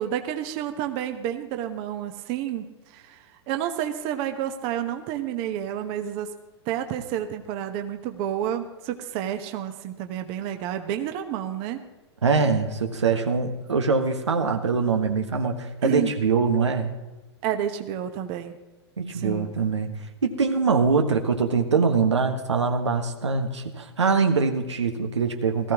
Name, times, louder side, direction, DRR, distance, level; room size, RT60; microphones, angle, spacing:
voice 1, 0.0-6.3 6.7-11.8 15.8-16.1 17.4-18.6 19.1-19.6, right 10 dB, 40° right, 7 dB, 1.1 m, -30 dB
voice 2, 12.2-16.9 19.0-19.9 20.2-25.7, right 5 dB, 90° right, 5 dB, 1.5 m, -23 dB
18.5 x 14.0 x 3.0 m, 1.1 s
hypercardioid pair, 115°, 14 cm